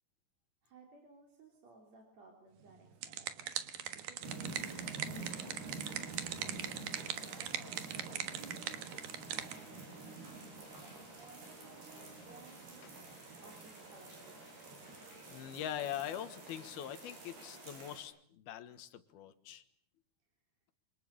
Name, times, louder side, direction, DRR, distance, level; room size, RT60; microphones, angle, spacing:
voice 1, 0.6-8.9 9.2-9.9 10.5-13.0 13.4-14.7, right 3 dB, 45° right, 1 dB, 4.2 m, -60 dB
sound 1, 2.7-9.6, right 10 dB, 65° right, 2.9 m, -41 dB
sound 2, 4.2-18.0, right 3 dB, 85° right, 8.2 m, -48 dB
voice 2, 15.3-19.6, left 10 dB, 80° left, 11 dB, 3.3 m, -42 dB
28.0 x 26.0 x 6.8 m, 0.66 s
omnidirectional pair, 4.5 m